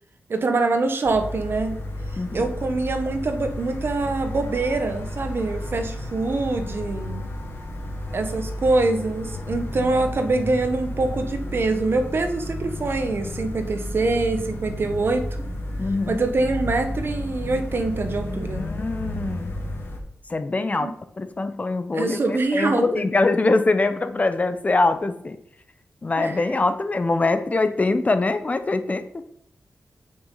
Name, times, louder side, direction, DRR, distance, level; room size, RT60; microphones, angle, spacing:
voice 1, 0.3-1.8 2.3-7.3 8.1-15.3 16.1-18.7 20.8-20.9 21.9-22.8 26.2-26.4, right 3 dB, 55° right, 7 dB, 1.4 m, -24 dB
sound 1, 1.0-20.0, left 1 dB, 60° left, 2.2 m, -32 dB
voice 2, 2.2-2.5 9.8-9.9 15.8-16.2 18.5-19.5 20.3-20.9 21.2-25.4 26.0-29.0, left 3 dB, 35° left, 11 dB, 0.8 m, -23 dB
8.8 x 6.4 x 5.6 m, 0.71 s
wide cardioid pair, 105°, 5 cm